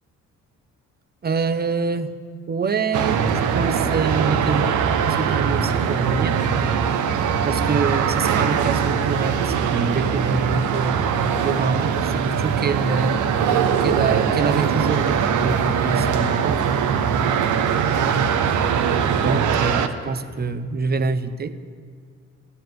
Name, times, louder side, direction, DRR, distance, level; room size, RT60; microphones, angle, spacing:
voice 1, 1.2-2.1 2.5-4.7 5.0-6.4 7.4-11.0 11.4-13.2 13.8-16.6 19.2-21.6, right 5 dB, 30° right, 11 dB, 0.9 m, -25 dB
sound 1, 2.9-19.9, right 7 dB, 75° right, 1.1 m, -21 dB
15.0 x 10.0 x 9.4 m, 2.1 s
cardioid pair, 90°, 30 cm